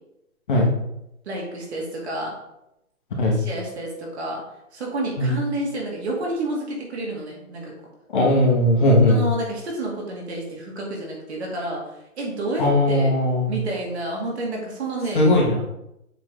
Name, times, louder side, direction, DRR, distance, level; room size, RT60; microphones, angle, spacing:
voice 1, 1.2-2.3 3.3-4.4 4.7-7.7 9.1-15.3, right 2 dB, 45° right, -2 dB, 2.3 m, -30 dB
voice 2, 8.1-9.2 12.6-13.5 15.1-15.6, left 1 dB, 35° left, -3 dB, 1.6 m, -18 dB
7.6 x 3.7 x 3.8 m, 0.85 s
hypercardioid pair, 165°, 44 cm